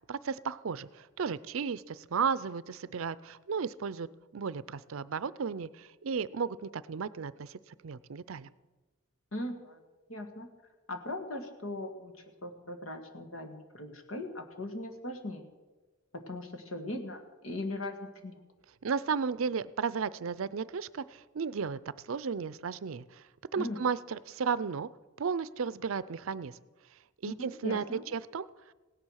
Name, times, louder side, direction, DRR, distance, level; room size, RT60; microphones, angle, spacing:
voice 1, 0.1-4.1 4.3-7.6 7.8-8.5 18.8-21.8 22.0-23.2 23.5-24.9 25.2-26.5 27.2-28.5, right 6 dB, 75° right, 17 dB, 0.5 m, -34 dB
voice 2, 9.3-9.8 10.1-10.5 10.9-12.1 12.4-15.4 16.1-18.4 23.6-23.8 27.2-28.0, left 1 dB, 75° left, 6 dB, 1.8 m, -39 dB
16.5 x 10.5 x 6.4 m, 1.3 s
head